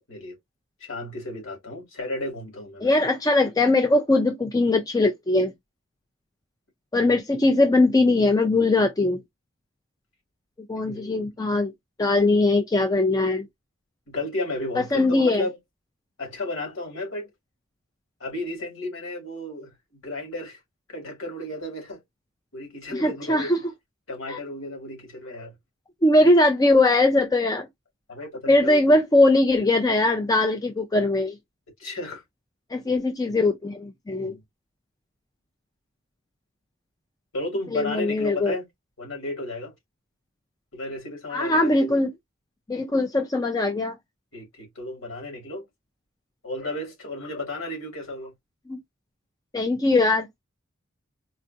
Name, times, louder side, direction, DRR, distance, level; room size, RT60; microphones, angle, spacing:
voice 1, 0.9-2.9 7.0-7.1 10.8-11.3 14.1-15.6 16.2-17.3 18.2-19.7 20.0-20.6 20.9-22.0 22.5-23.5 24.1-25.5 28.1-28.8 31.8-32.2 34.2-34.4 37.3-38.7 39.0-39.7 40.7-42.0 44.3-45.7 46.4-48.3, left 2 dB, 90° left, 2.2 m, -33 dB
voice 2, 2.8-5.5 6.9-9.2 10.7-11.7 12.0-13.5 14.8-15.5 22.9-23.6 24.3-24.4 26.0-27.7 28.5-31.4 32.7-34.3 37.7-38.6 41.3-42.1 42.7-44.0 48.7-48.8 49.5-50.4, left 2 dB, 20° left, 0.5 m, -21 dB
4.2 x 2.5 x 2.7 m
head